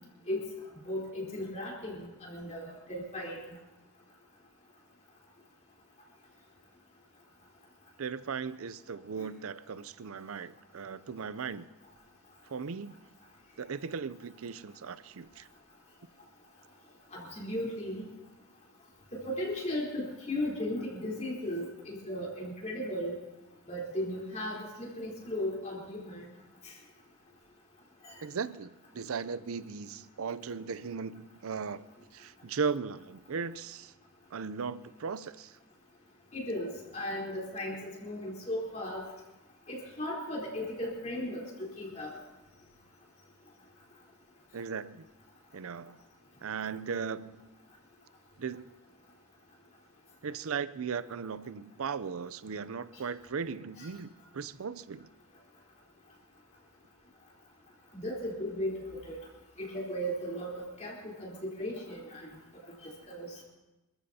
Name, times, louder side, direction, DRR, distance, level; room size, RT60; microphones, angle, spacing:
voice 1, 0.8-3.4 17.1-18.1 19.1-23.1 23.7-26.3 28.0-28.1 36.3-39.1 39.7-42.1 53.8-53.9 57.9-58.8 59.1-59.2 59.6-62.4 62.8-63.3, left 1 dB, 30° left, -3 dB, 3.8 m, -36 dB
voice 2, 8.0-11.7 12.5-13.0 13.6-15.5 28.2-31.8 32.1-33.9 34.3-35.6 44.5-45.0 45.5-46.0 46.4-47.5 48.4-48.7 50.2-55.1, right 5 dB, 70° right, 16 dB, 0.5 m, -37 dB
26.5 x 14.5 x 2.8 m, 1.0 s
head